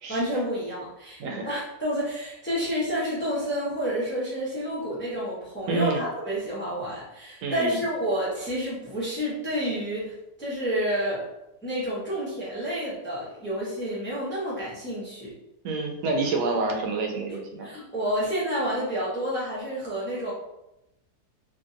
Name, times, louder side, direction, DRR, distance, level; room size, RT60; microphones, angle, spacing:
voice 1, 0.1-10.1 10.4-11.2 11.6-15.3 17.6-20.3, equal, 10° left, -8 dB, 0.6 m, -29 dB
voice 2, 1.2-1.6 5.7-6.1 7.4-7.8 15.6-17.7, right 3 dB, 80° right, 2 dB, 1.1 m, -28 dB
2.8 x 2.7 x 2.5 m, 0.90 s
omnidirectional pair, 1.7 m